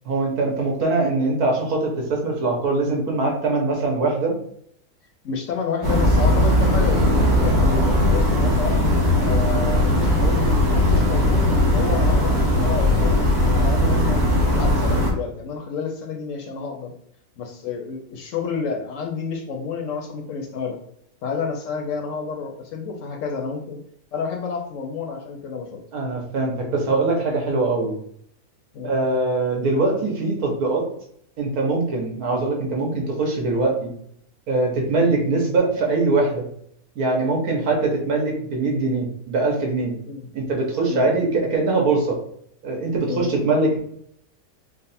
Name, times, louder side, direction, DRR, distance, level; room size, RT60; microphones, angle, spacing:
voice 1, 0.0-4.3 25.9-28.0 28.8-30.8 31.4-33.9 34.5-36.5 36.9-39.9 40.3-42.2 42.6-43.8, right 3 dB, 80° right, 0 dB, 1.4 m, -22 dB
voice 2, 5.2-8.9 9.2-9.9 10.2-13.2 13.5-16.9 17.4-20.8 21.2-23.8 24.1-25.8 28.7-28.9 32.3-32.4 35.0-35.2 40.1-40.3 40.9-41.1 43.1-43.3, left 5 dB, 70° left, 3 dB, 0.8 m, -30 dB
sound 1, 5.8-15.1, left 1 dB, 35° right, 1.1 m, -18 dB
3.8 x 2.0 x 4.1 m, 0.70 s
omnidirectional pair, 1.6 m